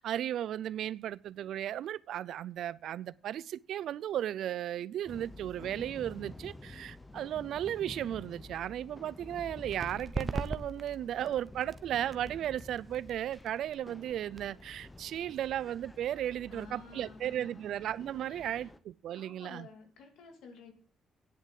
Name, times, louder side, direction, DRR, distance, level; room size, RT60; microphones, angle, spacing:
voice 1, 0.0-19.7, right 11 dB, 75° right, 0.4 m, -35 dB
sound 1, 5.1-18.8, left 2 dB, 15° left, 0.9 m, -50 dB
sound 2, 9.7-17.0, right 3 dB, 25° right, 0.9 m, -42 dB
voice 2, 16.5-17.6 18.3-18.7 19.1-20.7, left 5 dB, 80° left, 2.9 m, -52 dB
9.8 x 8.2 x 7.4 m
cardioid pair, 90°, 0 cm